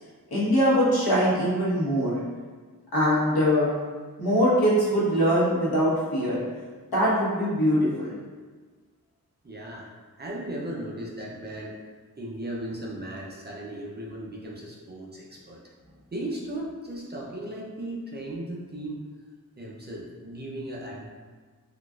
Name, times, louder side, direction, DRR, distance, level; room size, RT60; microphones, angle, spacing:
voice 1, 0.3-2.2 2.9-3.7 4.2-6.4 6.9-8.1, equal, 80° left, -8 dB, 1.2 m, -22 dB
voice 2, 9.4-9.9 10.2-11.8 12.2-15.6 16.1-19.0 19.6-21.1, right 1 dB, 25° right, -4 dB, 0.5 m, -36 dB
3.8 x 2.4 x 2.4 m, 1.4 s
wide cardioid pair, 90°, 37 cm